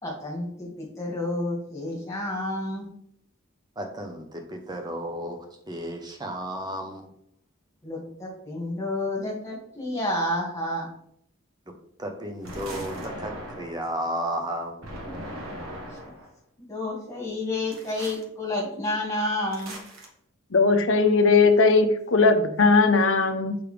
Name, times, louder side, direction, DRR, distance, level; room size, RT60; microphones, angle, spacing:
voice 1, 0.0-2.9 7.8-10.9 16.7-19.7, left 1 dB, 15° left, -2 dB, 1.9 m, -30 dB
voice 2, 3.8-5.4 5.7-7.1 11.7-11.8 12.0-15.0, right 1 dB, 20° right, 4 dB, 0.8 m, -33 dB
sound 1, 12.4-13.9 14.8-16.3 17.7-18.2 19.5-20.1, equal, 65° right, 1.5 m, -39 dB
voice 3, 20.5-23.6, left 4 dB, 60° left, 7 dB, 0.7 m, -19 dB
6.7 x 5.1 x 3.3 m, 0.68 s
head